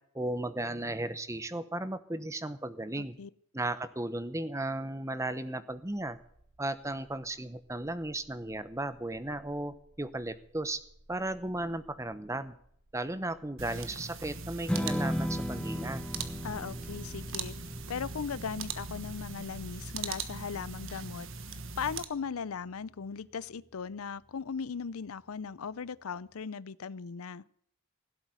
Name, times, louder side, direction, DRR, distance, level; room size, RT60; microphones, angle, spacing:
voice 1, 0.1-3.1 3.5-6.2 6.6-10.8 11.1-12.5 12.9-16.0, right 1 dB, 15° right, 0.9 m, -35 dB
voice 2, 3.0-3.3 16.4-17.6 17.9-21.3 21.8-27.4, left 6 dB, 85° left, 0.6 m, -38 dB
sound 1, 5.7-21.1, right 1 dB, 85° right, 3.0 m, -61 dB
sound 2, 13.6-22.0, right 5 dB, 65° right, 1.3 m, -41 dB
Strum, 14.7-21.0, equal, 5° left, 0.5 m, -37 dB
16.5 x 8.2 x 9.4 m
head